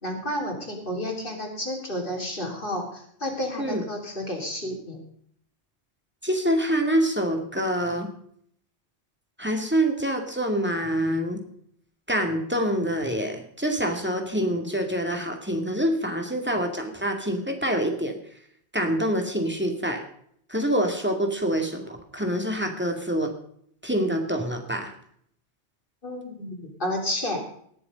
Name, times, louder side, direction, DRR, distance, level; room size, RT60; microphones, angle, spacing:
voice 1, 0.0-5.0 26.0-27.4, left 1 dB, 50° left, 1 dB, 3.6 m, -31 dB
voice 2, 6.2-8.1 9.4-11.4 12.1-18.2 18.7-20.0 20.5-23.3 23.8-24.9, equal, 10° right, 3 dB, 2.3 m, -26 dB
19.5 x 7.0 x 5.2 m, 0.65 s
omnidirectional pair, 1.1 m